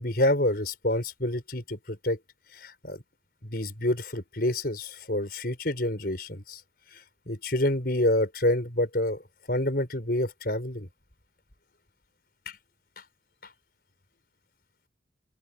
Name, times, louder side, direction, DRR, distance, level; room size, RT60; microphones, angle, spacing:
voice 1, 0.0-2.2 2.6-3.0 3.4-6.6 7.3-9.2 9.5-10.9, left 1 dB, 55° left, 5.6 m, -27 dB
open air
head